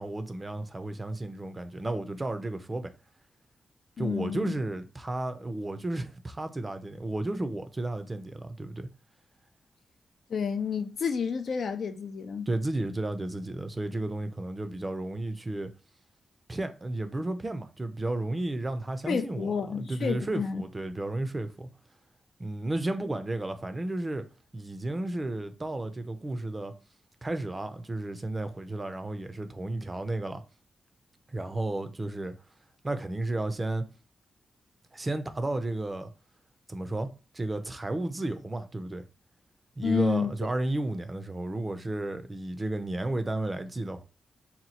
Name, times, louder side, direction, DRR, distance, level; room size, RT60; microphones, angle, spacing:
voice 1, 0.0-2.9 4.0-8.9 12.5-15.7 16.5-21.7 22.4-24.2 24.5-26.7 27.2-30.4 31.3-32.3 32.8-33.8 34.9-36.1 36.7-39.0 39.8-44.0, right 2 dB, 25° right, 0.5 m, -33 dB
voice 2, 4.0-4.5 10.3-12.5 19.1-20.6 39.8-40.3, left 6 dB, 70° left, 0.4 m, -30 dB
2.9 x 2.2 x 4.1 m
cardioid pair, 95°, 0 cm